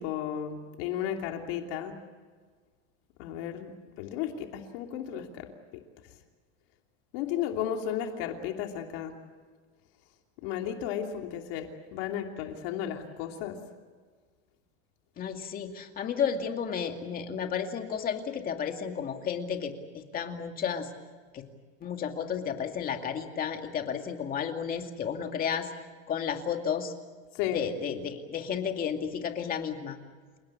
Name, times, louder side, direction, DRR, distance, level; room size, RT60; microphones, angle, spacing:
voice 1, 0.0-1.9 3.2-3.7 4.0-5.5 7.1-9.1 10.4-13.6 27.3-27.6, left 9 dB, 60° left, 3 dB, 3.0 m, -34 dB
voice 2, 15.2-20.9 21.3-21.5 21.8-25.7 26.1-26.9 27.5-30.0, left 7 dB, 25° left, 5 dB, 2.3 m, -32 dB
29.0 x 18.0 x 8.5 m, 1.5 s
supercardioid pair, 165°, 34 cm